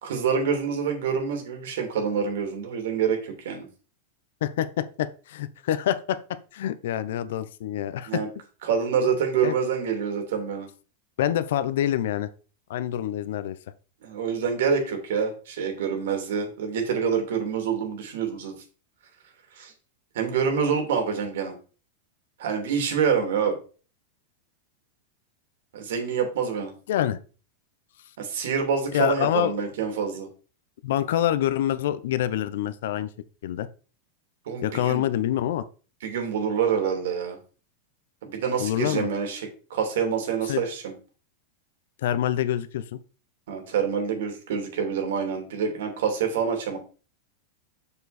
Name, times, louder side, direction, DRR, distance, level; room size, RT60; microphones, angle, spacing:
voice 1, 0.0-3.7 8.1-8.3 8.6-10.7 14.0-18.5 19.5-19.7 20.1-21.5 22.4-23.6 25.7-26.7 28.2-30.3 34.4-35.0 36.0-37.4 38.2-40.9 43.5-46.8, right 6 dB, 70° right, 4 dB, 2.9 m, -26 dB
voice 2, 4.4-8.2 9.4-9.5 11.2-12.3 12.7-13.6 26.9-27.2 28.9-29.7 30.8-33.1 33.4-33.7 34.6-35.6 38.6-39.1 40.5-40.6 42.0-43.0, left 11 dB, 70° left, 14 dB, 0.7 m, -26 dB
7.0 x 6.9 x 4.2 m, 0.36 s
supercardioid pair, 165°, 0 cm